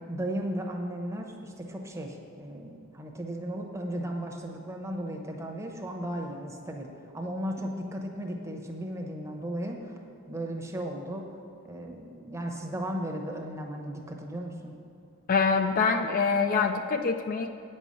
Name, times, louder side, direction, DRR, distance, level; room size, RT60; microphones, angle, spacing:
voice 1, 0.1-10.0 10.3-11.3 11.7-14.7, right 1 dB, 15° right, 1 dB, 0.8 m, -35 dB
voice 2, 15.3-17.5, left 5 dB, 40° left, 6 dB, 0.4 m, -25 dB
9.1 x 5.5 x 7.5 m, 2.7 s
head